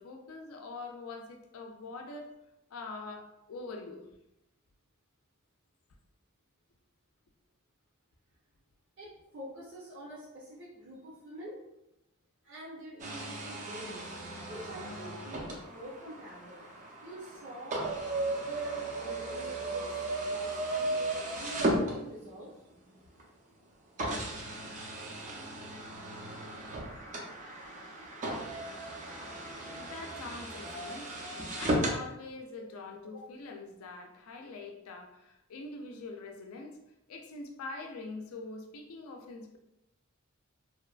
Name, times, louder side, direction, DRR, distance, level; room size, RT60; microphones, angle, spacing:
voice 1, 0.0-2.3 2.7-4.1 27.5-27.6 29.7-31.2 31.6-36.8 37.1-39.6, left 3 dB, 90° left, 4 dB, 0.4 m, -44 dB
voice 2, 9.0-11.6 12.4-14.1 14.5-16.6 17.0-17.8 18.3-22.5 32.6-32.7, right 1 dB, 60° right, -8 dB, 0.9 m, -46 dB
sound 1, 13.0-22.5 23.2-23.3 24.0-32.0, right 1 dB, 35° right, 0.5 m, -36 dB
2.8 x 2.2 x 2.3 m, 0.88 s
head